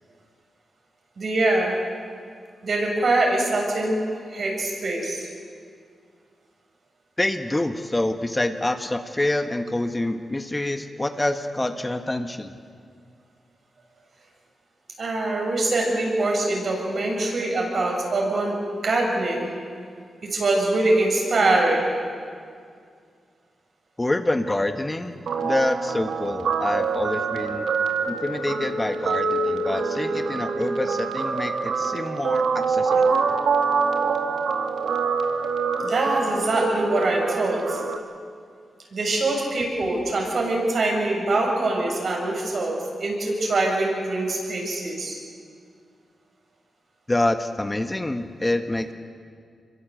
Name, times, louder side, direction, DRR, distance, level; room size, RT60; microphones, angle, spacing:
voice 1, 1.2-1.8 2.6-5.3 15.0-19.5 20.2-21.9 35.8-37.8 38.9-45.2, right 2 dB, 60° right, 0 dB, 7.5 m, -23 dB
voice 2, 7.2-12.6 24.0-27.7 28.1-33.2 47.1-48.9, left 1 dB, 20° left, 6 dB, 1.6 m, -26 dB
Guitar, 25.3-38.0, right 4 dB, 80° right, 1.9 m, -25 dB
25.5 x 22.5 x 7.9 m, 2.2 s
cardioid pair, 55°, 0 cm